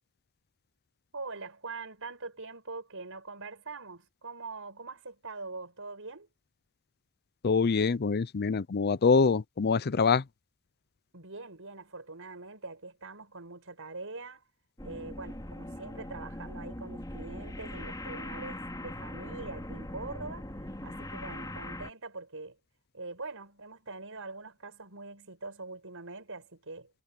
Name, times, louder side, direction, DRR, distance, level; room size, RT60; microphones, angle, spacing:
voice 1, 1.1-6.3 11.1-14.4 14.8-22.6 22.9-26.9, right 3 dB, 60° right, 6.8 m, -43 dB
voice 2, 7.4-10.2, left 5 dB, 45° left, 0.5 m, -25 dB
sound 1, 14.8-21.9, left 1 dB, 15° left, 2.8 m, -41 dB
head